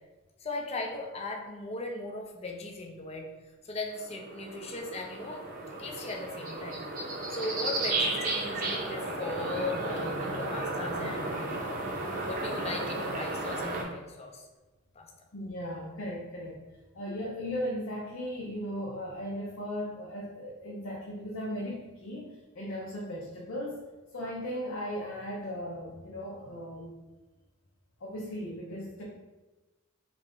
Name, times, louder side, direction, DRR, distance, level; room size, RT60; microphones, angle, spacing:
voice 1, 0.4-3.3 3.6-5.4 5.8-6.9 7.3-11.4 11.7-11.9 12.2-14.5 15.0-15.1, left 2 dB, 30° left, 2 dB, 0.4 m, -38 dB
sound 1, 3.9-13.8, right 2 dB, 40° right, 0.6 m, -34 dB
voice 2, 15.3-16.6 16.9-23.8 24.1-26.9 28.0-29.0, equal, 70° left, -4 dB, 0.6 m, -37 dB
3.2 x 2.5 x 3.6 m, 1.2 s
head